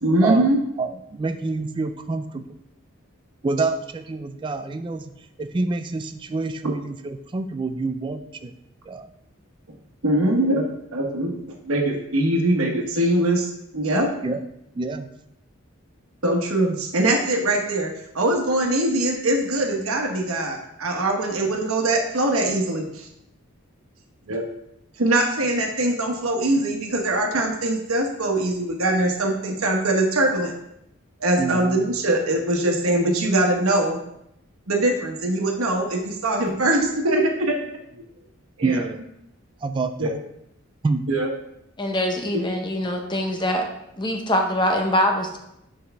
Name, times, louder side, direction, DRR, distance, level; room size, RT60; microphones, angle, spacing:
voice 1, 0.0-0.6 10.0-11.4 11.6-14.1 16.2-23.1 24.3-24.4 25.0-30.5 31.2-34.0 34.7-37.6 38.0-38.1 38.6-38.8 40.0-40.1 41.1-41.3, right 1 dB, 90° right, 1 dB, 1.2 m, -22 dB
voice 2, 0.8-2.5 3.4-5.1 5.4-8.5 8.9-9.1 14.2-14.4 14.8-15.1 31.4-31.9 38.6-39.0 39.6-40.2 40.8-41.0, right 3 dB, 25° right, 8 dB, 0.3 m, -27 dB
voice 3, 41.8-43.7 44.0-45.4, left 1 dB, 20° left, 2 dB, 0.7 m, -23 dB
8.0 x 4.9 x 3.4 m, 0.80 s
head